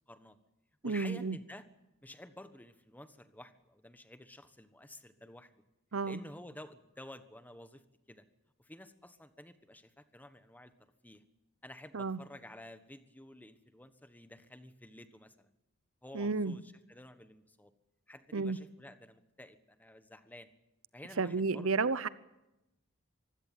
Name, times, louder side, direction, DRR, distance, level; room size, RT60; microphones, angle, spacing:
voice 1, 0.1-0.4 0.8-1.6 2.0-5.6 6.0-8.2 8.6-10.7 11.0-11.2 11.6-15.5 16.0-17.7 18.1-20.5 20.9-21.9, left 1 dB, 10° left, 1.3 m, -52 dB
voice 2, 0.8-1.4 5.9-6.2 11.9-12.2 16.1-16.6 18.3-18.6 21.2-22.1, right 4 dB, 80° right, 0.8 m, -32 dB
25.0 x 16.0 x 9.3 m
head